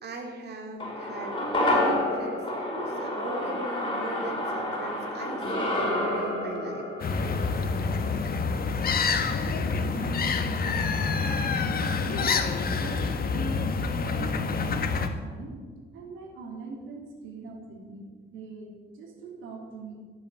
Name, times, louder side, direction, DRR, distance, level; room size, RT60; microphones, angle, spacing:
voice 1, 0.0-6.9, right 2 dB, 55° right, 1 dB, 2.8 m, -39 dB
sound 1, 0.8-9.3 9.6-9.7, left 1 dB, 25° left, 5.5 m, -30 dB
sound 2, 7.0-15.1, left 4 dB, 50° left, 1.7 m, -27 dB
voice 2, 9.6-12.4 12.7-15.6 15.9-20.0, right 3 dB, 90° right, 0 dB, 3.1 m, -41 dB
14.0 x 8.8 x 8.3 m, 1.5 s
cardioid pair, 90°, 20 cm